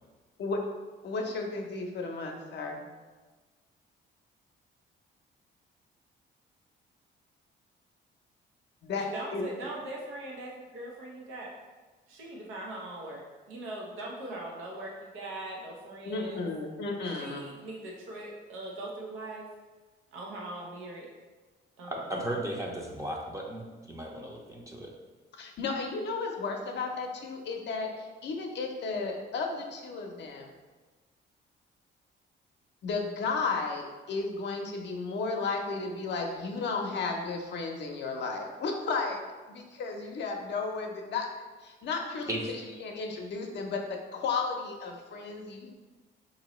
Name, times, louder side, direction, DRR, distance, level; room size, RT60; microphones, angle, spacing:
voice 1, 1.0-2.9 8.8-9.1 9.3-9.5 16.0-17.5 25.4-30.5 32.8-39.2 39.5-41.3 41.6-45.7, left 4 dB, 60° left, 1 dB, 0.6 m, -34 dB
voice 2, 9.0-11.5 12.1-13.2 13.5-16.4 17.1-19.5 20.1-21.1 21.8-22.1, right 1 dB, 90° right, -2 dB, 0.7 m, -41 dB
voice 3, 21.9-24.9 42.3-42.4, right 1 dB, 15° right, -1 dB, 0.6 m, -35 dB
3.8 x 2.6 x 3.0 m, 1.3 s
cardioid pair, 90°, 20 cm